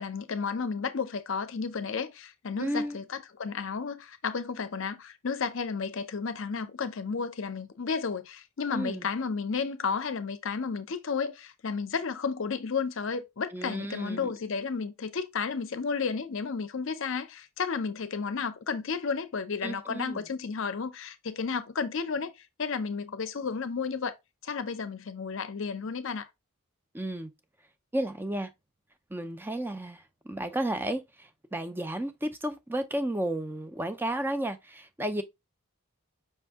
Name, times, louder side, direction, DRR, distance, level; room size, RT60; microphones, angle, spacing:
voice 1, 0.0-22.3 22.6-24.1 24.4-26.3, left 5 dB, 60° left, 0.5 m, -32 dB
voice 2, 2.6-3.0 8.7-9.1 13.5-14.3 19.6-20.3 26.9-27.3 27.9-28.5 29.1-35.2, right 1 dB, 10° right, 0.4 m, -33 dB
5.4 x 2.6 x 3.4 m
head